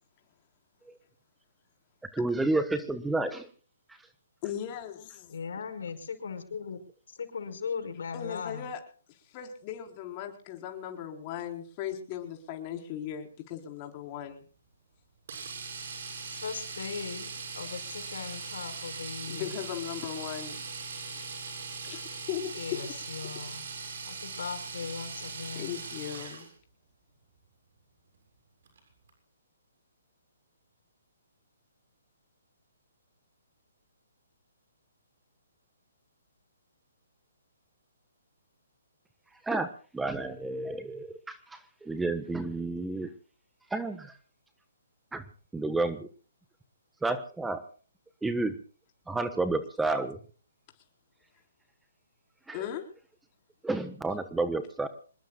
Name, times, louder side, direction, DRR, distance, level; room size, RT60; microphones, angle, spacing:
voice 1, 2.1-3.5 39.4-43.1 43.7-44.1 45.1-45.2 45.5-46.1 47.0-47.6 48.2-48.6 49.1-50.2 52.5-52.6 53.6-54.9, right 2 dB, 5° right, 10 dB, 1.3 m, -30 dB
voice 2, 4.4-5.3 8.1-8.8 9.3-14.4 19.3-20.6 21.8-22.5 25.5-26.5 52.5-52.9, left 10 dB, 35° left, 3 dB, 4.3 m, -38 dB
voice 3, 5.3-6.8 7.1-8.7 16.2-17.3 17.6-19.5 22.5-23.7 24.1-25.7, left 5 dB, 70° left, 7 dB, 5.3 m, -38 dB
Domestic sounds home sounds, 15.3-26.5 28.7-28.8 29.1-29.2, right 4 dB, 60° right, 7.5 m, -40 dB
26.5 x 20.5 x 2.3 m, 0.40 s
hypercardioid pair, 140°, 0 cm